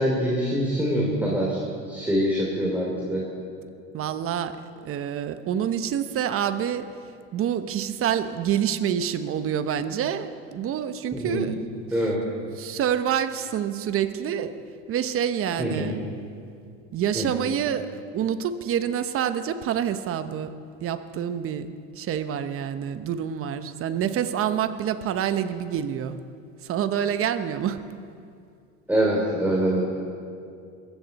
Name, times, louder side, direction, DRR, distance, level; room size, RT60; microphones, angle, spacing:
voice 1, 0.0-3.2 11.1-11.5 11.9-12.2 15.6-16.0 17.1-17.4 28.9-30.0, equal, 5° right, -4 dB, 3.1 m, -24 dB
voice 2, 3.9-4.6 4.8-6.9 7.3-11.6 12.6-14.6 14.9-16.0 16.9-20.5 20.8-21.7 21.9-26.2 26.6-27.8, right 9 dB, 40° right, 11 dB, 1.0 m, -27 dB
22.0 x 15.5 x 4.2 m, 2.4 s
supercardioid pair, 120°, 35 cm